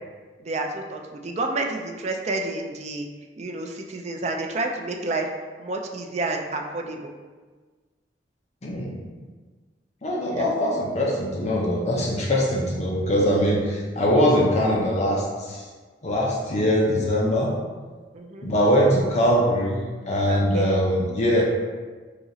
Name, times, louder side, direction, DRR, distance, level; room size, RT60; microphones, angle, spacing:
voice 1, 0.4-3.1 3.4-5.3 5.6-7.1 10.2-10.5 18.1-18.5 20.3-20.8, right 2 dB, 40° right, 2 dB, 0.4 m, -30 dB
voice 2, 8.6-9.0 10.0-15.6 16.0-17.5 18.4-21.4, equal, 40° left, -4 dB, 0.6 m, -22 dB
4.9 x 2.9 x 2.7 m, 1.4 s
head